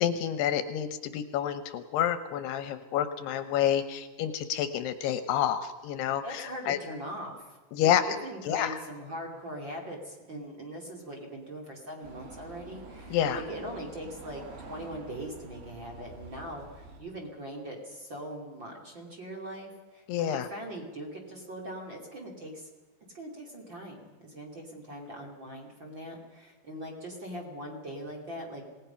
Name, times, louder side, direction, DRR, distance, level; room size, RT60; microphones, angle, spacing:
voice 1, 0.0-6.8 7.7-8.0 8.5-8.8 13.1-13.4 20.1-20.5, left 10 dB, 75° left, 10 dB, 2.8 m, -28 dB
voice 2, 6.2-22.7 23.1-28.6, right 1 dB, 30° right, 0 dB, 2.7 m, -41 dB
sound 1, 12.0-17.0, right 3 dB, 80° right, 5.0 m, -47 dB
26.5 x 18.5 x 5.7 m, 1.2 s
omnidirectional pair, 5.0 m